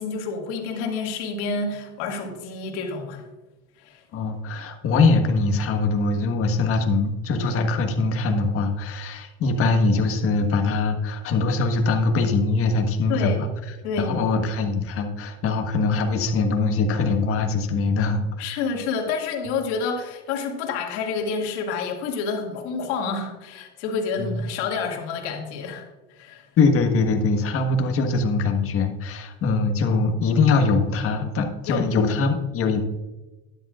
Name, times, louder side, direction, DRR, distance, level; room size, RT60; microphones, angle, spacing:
voice 1, 0.0-3.3 3.8-4.0 13.1-13.4 13.8-14.2 18.4-25.9 26.2-26.5 31.7-31.9, left 4 dB, 80° left, 1 dB, 2.2 m, -28 dB
voice 2, 4.1-13.5 14.0-18.6 24.2-24.4 26.6-32.8, left 3 dB, 40° left, 4 dB, 1.5 m, -22 dB
12.5 x 10.5 x 2.5 m, 1.1 s
supercardioid pair, 130°, 34 cm